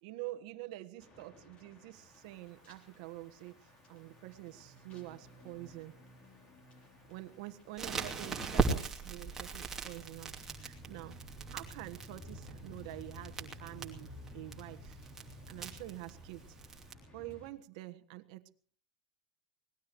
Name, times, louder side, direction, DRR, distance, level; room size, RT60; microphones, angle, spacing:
voice 1, 0.0-6.0 7.1-15.0 15.5-16.6 17.1-18.5, right 17 dB, 55° right, 1.4 m, -47 dB
sound 1, 1.0-17.5, equal, 25° left, 3.3 m, -54 dB
Crackle, 7.8-16.9, right 4 dB, 10° right, 2.6 m, -39 dB
24.5 x 19.0 x 3.1 m
supercardioid pair, 160°, 4 cm